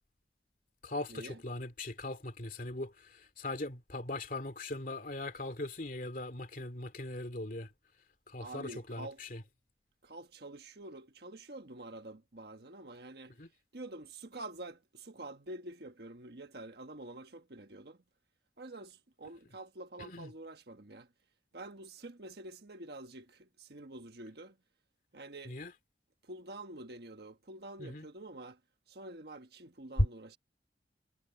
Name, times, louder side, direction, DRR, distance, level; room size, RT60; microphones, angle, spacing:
voice 1, 0.8-7.7 8.3-9.4 13.4-13.5 20.0-20.3 25.5-25.7 27.8-28.1, left 2 dB, 50° left, 2.5 m, -40 dB
voice 2, 8.4-9.2 10.0-13.3 13.7-18.0 18.6-21.1 21.5-24.6 25.1-25.6 26.2-28.6 28.9-30.4, right 2 dB, 65° right, 1.4 m, -47 dB
head